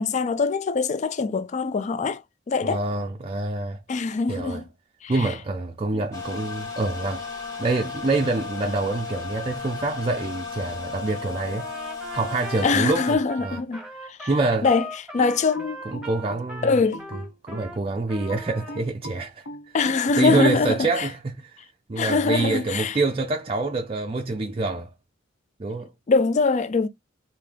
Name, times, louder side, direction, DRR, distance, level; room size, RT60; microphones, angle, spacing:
voice 1, 0.0-2.2 2.5-2.8 3.9-4.6 5.0-5.3 5.9-6.0 12.6-13.8 14.1-14.3 14.6-14.8 15.1-15.8 16.6-17.0 19.7-21.1 22.0-23.0 26.1-26.9, left 4 dB, 35° left, 0.4 m, -23 dB
voice 2, 2.6-3.8 4.3-4.6 5.1-7.3 7.6-11.7 12.1-13.6 14.3-14.7 15.9-16.7 17.4-19.8 20.2-21.6 21.9-24.9 25.6-25.9, right 3 dB, 30° right, 0.4 m, -26 dB
sound 1, 6.1-13.2, left 5 dB, 15° left, 1.1 m, -35 dB
Trumpet, 11.6-17.8 18.1-18.8, equal, 5° right, 0.9 m, -39 dB
sound 2, 15.2-17.8 18.3-21.0, left 1 dB, 75° left, 1.1 m, -39 dB
3.5 x 2.7 x 3.4 m
head